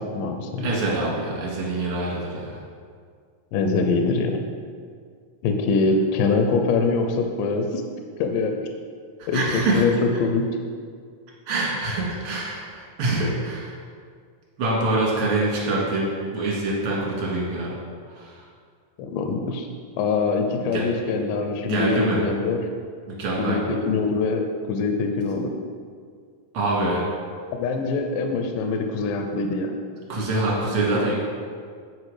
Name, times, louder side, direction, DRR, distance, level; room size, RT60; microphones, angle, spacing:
voice 1, 0.0-0.7 3.5-4.4 5.4-7.8 8.2-8.7 9.3-10.5 19.0-19.7 20.0-22.6 23.4-25.5 27.5-29.7, left 4 dB, 80° left, 4 dB, 2.2 m, -23 dB
voice 2, 0.6-2.6 9.2-9.8 11.5-13.8 14.6-17.8 18.1-18.4 20.7-20.8 21.6-22.2 23.1-23.6 26.5-27.0 30.1-31.1, right 2 dB, 45° right, -4 dB, 2.2 m, -25 dB
8.3 x 4.8 x 4.9 m, 2.1 s
omnidirectional pair, 3.9 m